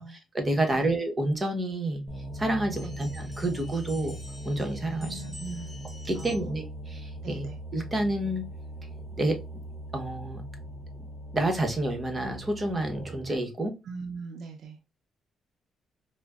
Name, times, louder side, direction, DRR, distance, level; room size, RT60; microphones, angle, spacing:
voice 1, 0.0-2.0 2.3-4.2 4.4-5.2 6.0-7.5 7.7-8.5 9.2-9.4 9.9-10.4 11.3-13.8, right 1 dB, 25° right, 1.0 m, -29 dB
sound 1, 2.1-13.3, right 1 dB, 25° left, 0.8 m, -40 dB
sound 2, 2.7-6.7, left 1 dB, 5° right, 1.5 m, -50 dB
voice 2, 5.0-5.7 6.1-6.5 7.2-7.6 13.8-14.8, right 4 dB, 75° right, 0.6 m, -40 dB
5.0 x 2.1 x 2.3 m
cardioid pair, 90°, 0 cm